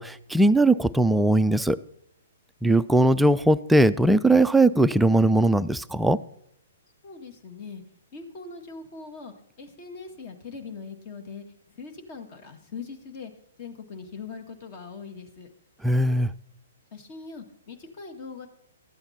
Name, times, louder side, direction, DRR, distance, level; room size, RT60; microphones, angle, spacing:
voice 1, 0.0-1.8 2.6-6.2 15.8-16.3, right 1 dB, 5° right, 13 dB, 0.3 m, -20 dB
voice 2, 7.0-7.8 8.1-13.3 13.6-15.5 16.9-18.5, left 4 dB, 40° left, 6 dB, 1.8 m, -41 dB
13.0 x 8.7 x 4.3 m, 0.71 s
figure-of-eight pair, 120°, 0 cm